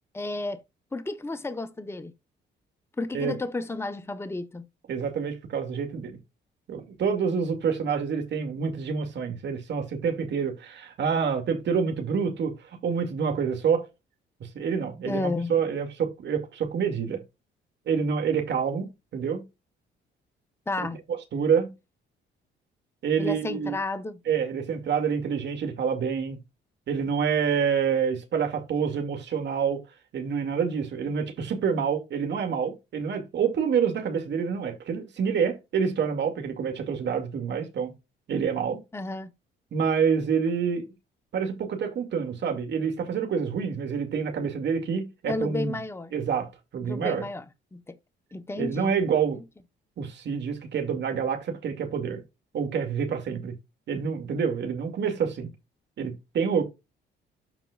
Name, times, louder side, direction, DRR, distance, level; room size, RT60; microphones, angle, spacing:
voice 1, 0.1-0.6 0.9-2.1 3.0-4.7 15.0-15.5 20.7-21.0 23.2-24.2 38.9-39.3 45.3-46.2 46.9-47.4 47.7-47.9 48.3-48.9, left 2 dB, 10° left, 0.9 m, -32 dB
voice 2, 4.9-6.2 6.7-13.9 14.4-17.2 17.9-19.4 21.1-21.7 23.0-23.8 24.3-26.4 26.9-29.8 30.1-37.9 38.3-38.8 39.7-40.8 41.3-45.8 46.1-47.3 48.6-49.4 50.0-52.2 52.5-53.5 53.9-55.5 56.0-56.6, right 6 dB, 65° right, 2.3 m, -27 dB
13.0 x 4.4 x 2.4 m
cardioid pair, 90°, 20 cm